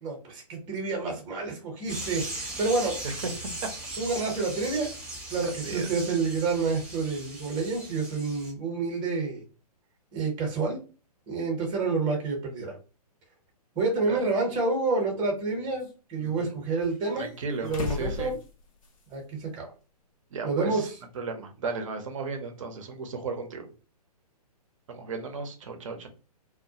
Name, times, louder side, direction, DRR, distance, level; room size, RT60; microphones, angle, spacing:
voice 1, 0.0-3.0 4.0-4.9 5.3-9.4 10.1-10.8 11.3-12.8 13.8-17.3 17.6-18.4 19.1-19.7 20.4-20.9, right 3 dB, 20° right, 1 dB, 0.9 m, -28 dB
sound 1, 1.9-8.5, right 1 dB, 5° right, 0.5 m, -38 dB
voice 2, 3.0-3.5 5.6-6.1 14.1-14.3 16.2-16.6 17.2-18.3 20.3-20.9 21.1-23.7 24.9-26.1, right 4 dB, 55° right, 5 dB, 0.7 m, -35 dB
sound 2, 14.0-14.1 15.0-15.9 16.8-19.1 19.4-19.5 21.1-21.2, left 5 dB, 55° left, 0.7 m, -38 dB
2.2 x 2.2 x 2.8 m, 0.35 s
figure-of-eight pair, 125°, 20 cm